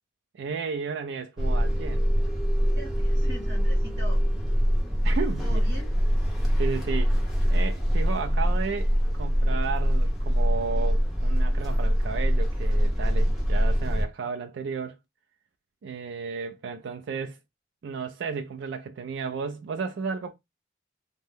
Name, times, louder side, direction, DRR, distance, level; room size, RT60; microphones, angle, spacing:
voice 1, 0.3-2.1 5.0-5.6 6.6-7.2 7.5-15.0 15.8-17.4 17.8-20.3, right 5 dB, 80° right, 0.3 m, -33 dB
sound 1, 1.4-14.0, equal, ahead, 0.7 m, -24 dB
voice 2, 2.8-4.2 5.4-5.9, left 1 dB, 65° right, 1.5 m, -41 dB
2.7 x 2.1 x 3.3 m
head